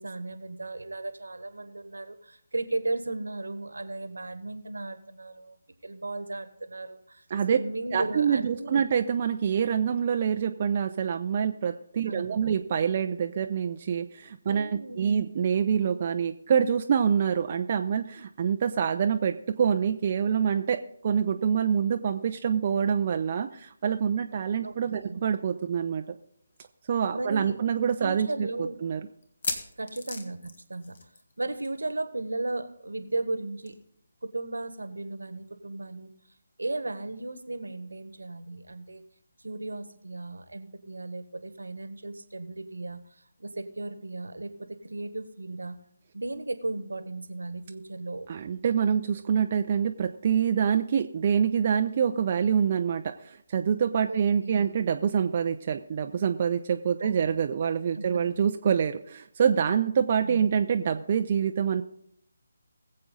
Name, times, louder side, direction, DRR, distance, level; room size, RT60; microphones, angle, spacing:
voice 1, 0.0-5.6 5.8-8.8 12.1-12.4 14.5-15.1 24.6-25.2 27.1-27.6 28.0-28.8 29.8-31.0 31.4-33.8 34.2-36.1 36.6-39.0 39.4-45.7 46.1-48.3 54.1-54.8 57.0-57.3 57.9-58.3 60.2-60.6, right 2 dB, 70° right, 11 dB, 1.4 m, -35 dB
voice 2, 7.9-26.2 26.9-29.0 48.3-61.8, right 7 dB, 35° right, 6 dB, 0.6 m, -26 dB
sound 1, 26.6-26.7 27.0-27.1 27.7-27.8 29.2-31.4 31.6-31.8 32.1-32.2 33.7-33.8, left 3 dB, 50° left, 1.8 m, -36 dB
20.5 x 7.6 x 3.9 m, 0.71 s
figure-of-eight pair, 150°, 0 cm